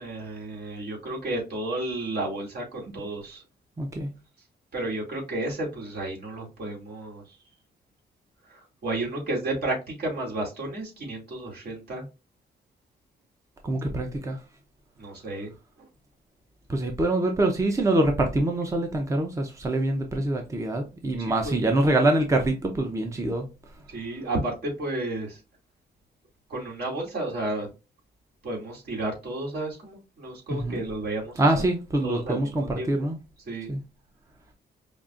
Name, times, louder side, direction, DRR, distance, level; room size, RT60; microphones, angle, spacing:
voice 1, 0.0-3.4 4.7-7.4 8.5-12.0 15.0-15.5 21.2-21.6 23.9-25.4 26.5-27.7 28.4-31.6 32.0-33.1 33.5-33.7, right 2 dB, 65° right, 2.3 m, -32 dB
voice 2, 3.8-4.1 13.6-14.4 16.7-23.5 30.5-30.8 31.4-33.2 33.7-33.8, right 1 dB, 15° right, 0.6 m, -25 dB
5.2 x 2.5 x 2.4 m
cardioid pair, 105°, 18 cm